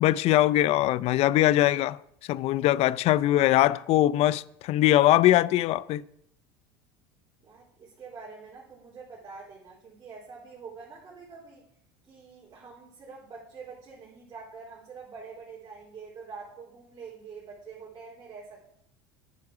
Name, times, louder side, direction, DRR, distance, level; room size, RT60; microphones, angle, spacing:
voice 1, 0.0-2.0 2.3-6.0, left 14 dB, 50° left, 0.5 m, -22 dB
voice 2, 7.4-11.6 12.0-18.7, right 5 dB, 30° right, 3.8 m, -45 dB
9.8 x 8.7 x 6.0 m
supercardioid pair, 95°, 13 cm